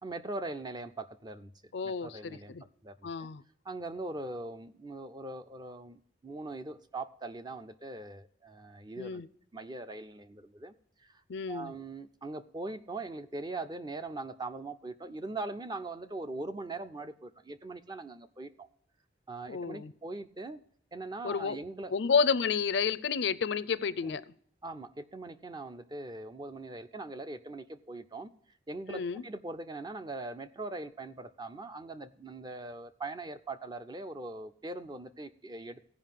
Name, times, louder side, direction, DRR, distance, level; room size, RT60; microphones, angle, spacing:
voice 1, 0.0-2.5 2.8-3.3 3.6-9.2 9.5-10.7 11.0-11.2 11.5-18.7 19.3-20.6 20.9-21.9 24.0-24.2 24.6-28.3 28.7-35.8, right 2 dB, 20° right, 10 dB, 0.5 m, -41 dB
voice 2, 1.7-2.6 3.0-3.4 9.0-9.3 11.3-11.7 19.5-19.9 21.2-21.6 21.9-24.2 28.9-29.2, left 5 dB, 70° left, 17 dB, 0.5 m, -30 dB
15.5 x 5.2 x 7.4 m, 0.63 s
head